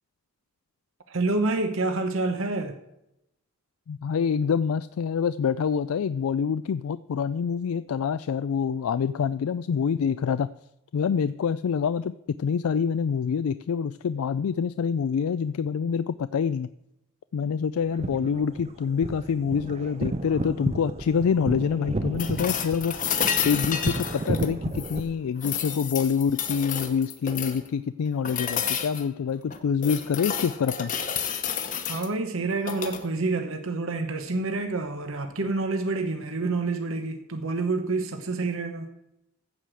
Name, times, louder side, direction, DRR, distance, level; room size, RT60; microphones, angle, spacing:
voice 1, 1.1-2.8 31.9-38.9, right 3 dB, 65° right, 6 dB, 0.9 m, -28 dB
voice 2, 3.9-10.5 10.9-12.1 12.4-16.7 17.3-22.9 23.4-30.9, left 6 dB, 75° left, 14 dB, 0.3 m, -26 dB
sound 1, 17.8-25.0, right 2 dB, 30° right, 0.6 m, -32 dB
sound 2, 22.2-25.0 25.4-27.7 28.2-29.0 29.5-32.1 32.6-33.0 35.1-35.2, left 8 dB, 35° left, 1.0 m, -30 dB
15.0 x 5.0 x 7.6 m, 0.85 s
head